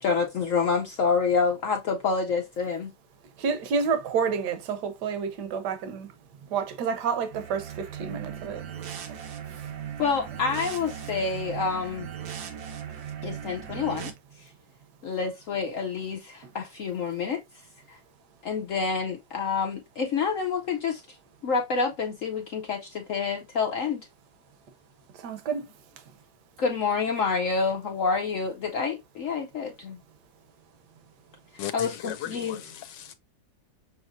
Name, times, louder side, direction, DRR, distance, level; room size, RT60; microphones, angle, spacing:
voice 1, 0.0-2.9 10.0-12.1 13.2-14.1 14.4-14.5 15.0-17.4 17.9-18.0 18.4-21.2 21.4-24.1 26.6-30.0 31.7-32.6, left 5 dB, 65° left, 0.8 m, -28 dB
voice 2, 3.4-6.1 6.5-8.6 25.2-25.6, right 6 dB, 70° right, 1.4 m, -29 dB
sound 1, 7.3-14.1, right 8 dB, 85° right, 1.7 m, -38 dB
voice 3, 31.6-33.1, left 12 dB, 80° left, 1.2 m, -37 dB
6.4 x 3.0 x 2.5 m
omnidirectional pair, 2.0 m